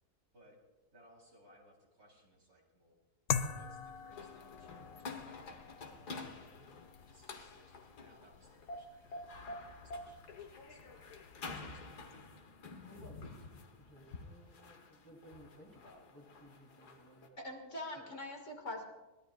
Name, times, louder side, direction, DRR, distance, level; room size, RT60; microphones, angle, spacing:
voice 1, 0.9-3.0 3.5-6.5 7.1-12.1, equal, 65° right, -1 dB, 4.4 m, -65 dB
sound 1, 3.3-12.1, left 7 dB, 65° left, 1.1 m, -44 dB
sound 2, 4.1-17.3, left 3 dB, 85° left, 1.9 m, -49 dB
voice 2, 12.8-13.2 13.8-17.4 18.0-18.1, equal, 15° left, -2 dB, 3.1 m, -58 dB
voice 3, 17.4-18.8, left 1 dB, 50° left, 1 dB, 2.6 m, -43 dB
23.0 x 18.5 x 2.5 m, 1.1 s
omnidirectional pair, 1.7 m